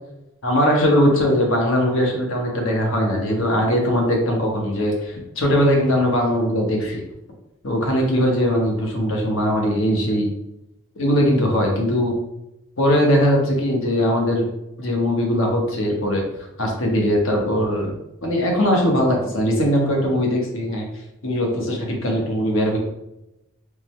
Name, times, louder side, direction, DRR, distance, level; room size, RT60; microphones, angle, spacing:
voice 1, 0.4-7.0 7.6-10.3 11.0-12.1 12.8-14.5 14.8-16.2 16.6-17.9 18.2-20.9 21.2-22.8, equal, 75° left, 0 dB, 1.1 m, -20 dB
3.7 x 3.3 x 3.1 m, 0.90 s
head